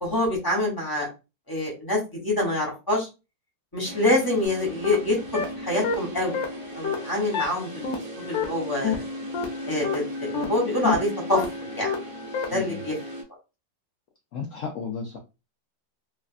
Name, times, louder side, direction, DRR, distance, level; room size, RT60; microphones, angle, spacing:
voice 1, 0.0-1.1 1.5-3.1 3.7-6.4 6.7-7.9 8.3-9.0 9.7-11.9 12.5-12.9, left 1 dB, 15° left, -3 dB, 0.7 m, -26 dB
sound 1, 3.8-13.2, equal, 40° right, 0.8 m, -36 dB
sound 2, 4.4-4.5 4.8-4.9 5.3-5.4 5.8-5.9 6.3-6.4 6.8-6.9 7.3-7.4 7.8-7.9 8.3-8.4 8.8-9.0 9.3-9.4 9.8-9.9 10.3-10.4 10.8-11.0 11.3-11.4 11.8-11.9 12.3-12.4, left 6 dB, 60° left, 1.1 m, -26 dB
voice 2, 14.3-15.2, left 6 dB, 90° left, 2 dB, 0.6 m, -33 dB
3.3 x 2.4 x 2.5 m, 0.28 s
omnidirectional pair, 2.0 m